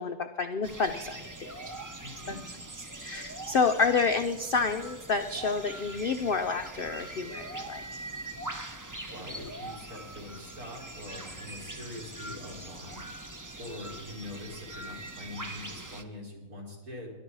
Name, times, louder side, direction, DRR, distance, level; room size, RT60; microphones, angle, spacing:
voice 1, 0.0-1.6 2.8-8.0, left 4 dB, 65° left, 8 dB, 0.5 m, -29 dB
sound 1, 0.6-16.0, right 2 dB, 25° right, 0.4 m, -42 dB
voice 2, 2.0-2.4 9.1-13.0 13.6-17.1, left 1 dB, 60° right, -1 dB, 4.0 m, -43 dB
22.0 x 11.5 x 4.7 m, 1.2 s
omnidirectional pair, 1.7 m